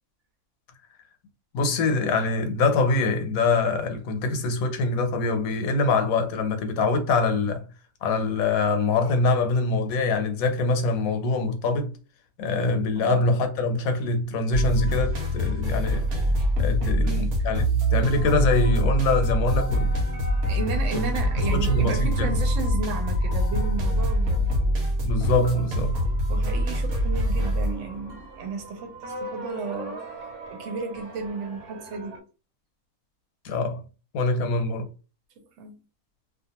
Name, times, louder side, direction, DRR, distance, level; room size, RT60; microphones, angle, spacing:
voice 1, 1.5-7.6 8.0-11.9 12.4-16.1 16.6-20.0 20.9-21.1 21.5-22.3 25.0-26.0 33.4-33.8 34.1-34.9, left 3 dB, 80° left, 1.1 m, -24 dB
voice 2, 12.9-13.2 16.8-17.6 20.5-24.5 26.3-32.2 35.4-35.8, right 4 dB, 65° right, 1.0 m, -34 dB
sound 1, 14.5-32.2, equal, 85° right, 1.2 m, -25 dB
sound 2, 18.1-24.9, left 2 dB, 35° left, 0.8 m, -42 dB
2.4 x 2.4 x 2.8 m
omnidirectional pair, 1.5 m